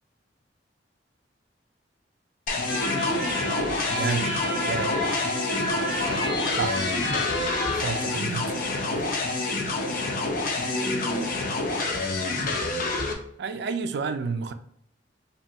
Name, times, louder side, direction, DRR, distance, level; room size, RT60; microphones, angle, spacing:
sound 1, 2.5-13.1, left 3 dB, 50° left, 0.7 m, -28 dB
sound 2, 2.7-8.0, left 1 dB, 70° left, 1.0 m, -30 dB
voice 1, 2.7-3.4 5.9-7.6 7.9-8.3 10.6-11.4, equal, 10° left, -1 dB, 0.7 m, -37 dB
voice 2, 3.9-4.3 4.7-5.1 6.6-6.9 7.7-8.6 8.9-9.1 13.4-14.5, right 5 dB, 65° right, 9 dB, 0.4 m, -30 dB
5.2 x 2.3 x 2.8 m, 0.69 s
head